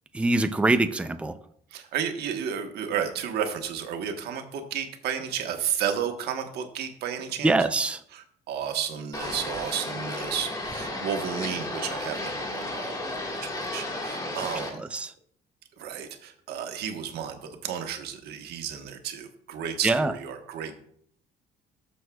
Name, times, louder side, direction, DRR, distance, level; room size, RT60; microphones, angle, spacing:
voice 1, 0.1-1.3 7.4-8.0 14.9-15.1 19.8-20.1, right 2 dB, 5° right, 9 dB, 0.4 m, -23 dB
voice 2, 1.7-7.6 8.1-14.8 15.8-20.8, right 8 dB, 75° right, 5 dB, 1.2 m, -32 dB
sound 1, 9.1-14.7, left 2 dB, 20° left, 1.7 m, -33 dB
12.5 x 6.3 x 2.3 m, 0.65 s
cardioid pair, 110°, 17 cm